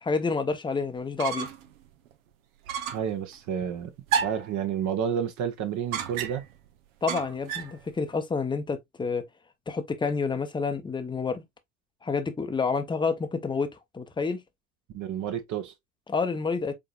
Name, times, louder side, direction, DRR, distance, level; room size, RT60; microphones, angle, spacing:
voice 1, 0.0-1.5 7.0-9.2 9.7-11.4 12.0-14.4 16.1-16.7, left 4 dB, 10° left, 0.8 m, -29 dB
sound 1, 1.0-1.7 2.1-2.2 2.7-3.1 4.1-4.5 5.9-6.6 7.1-7.8, right 8 dB, 70° right, 1.0 m, -31 dB
voice 2, 2.9-6.4 14.9-15.7, right 8 dB, 45° right, 1.1 m, -30 dB
5.0 x 3.8 x 2.5 m
hypercardioid pair, 80°, 42 cm